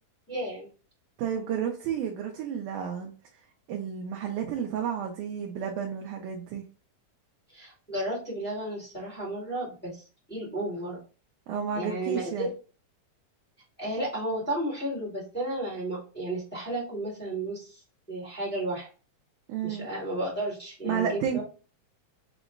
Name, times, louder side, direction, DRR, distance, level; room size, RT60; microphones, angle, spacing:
voice 1, 0.3-0.7 7.5-10.0 10.3-11.0 11.7-12.5 13.8-17.8 18.1-18.9 19.6-21.4, right 1 dB, 10° left, -4 dB, 0.5 m, -33 dB
voice 2, 1.2-3.1 3.7-6.6 11.5-12.5 19.5-19.9 20.8-21.4, right 8 dB, 75° right, 1 dB, 2.0 m, -31 dB
5.9 x 2.1 x 3.7 m, 0.36 s
omnidirectional pair, 4.0 m